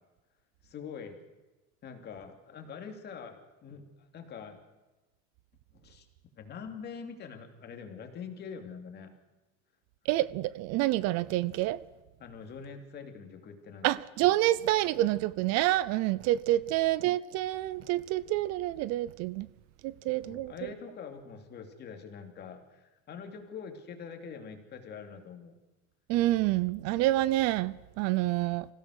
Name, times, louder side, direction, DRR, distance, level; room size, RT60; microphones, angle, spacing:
voice 1, 0.6-1.2 1.8-4.6 5.7-6.1 6.4-9.1 12.2-14.0 16.5-16.7 20.2-25.6, left 6 dB, 30° left, 2.8 m, -44 dB
voice 2, 10.1-11.8 13.8-19.5 19.8-20.5 26.1-28.7, right 16 dB, 55° right, 0.7 m, -28 dB
25.5 x 16.0 x 6.5 m
cardioid pair, 160°, 31 cm